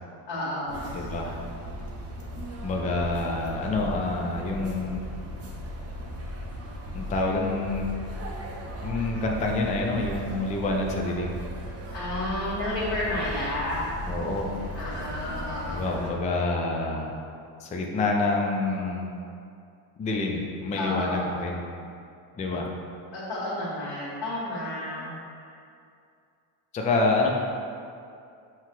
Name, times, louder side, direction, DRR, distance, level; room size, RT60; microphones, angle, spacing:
voice 1, 0.3-0.9 11.9-13.9 14.7-15.9 20.8-21.3 23.1-25.5, left 1 dB, 65° left, -10 dB, 1.3 m, -31 dB
sound 1, 0.7-16.1, equal, 30° right, 0.6 m, -37 dB
voice 2, 0.9-1.4 2.6-5.1 6.9-7.9 8.8-11.4 14.0-14.5 15.7-17.1 17.6-19.2 20.0-21.6 22.4-22.7 26.7-27.3, left 2 dB, 20° left, 0 dB, 0.3 m, -27 dB
5.7 x 2.2 x 3.0 m, 2.5 s
cardioid pair, 95°, 46 cm